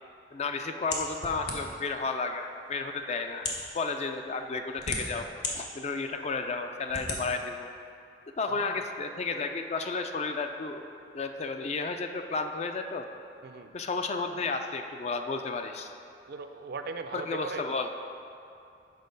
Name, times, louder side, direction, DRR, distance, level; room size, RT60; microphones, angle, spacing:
voice 1, 0.3-5.3 5.5-7.7 8.4-10.9 11.1-13.0 13.7-15.9 17.1-17.9, left 4 dB, 40° left, 6 dB, 0.4 m, -32 dB
sound 1, 0.9-1.9 2.7-2.8 3.3-3.7 4.5-5.5 6.0-6.1 6.9-7.2, left 3 dB, 65° left, 1.0 m, -34 dB
voice 2, 8.5-8.8 13.4-13.7 16.3-17.6, right 4 dB, 60° right, 7 dB, 0.4 m, -39 dB
6.5 x 4.7 x 5.2 m, 2.6 s
head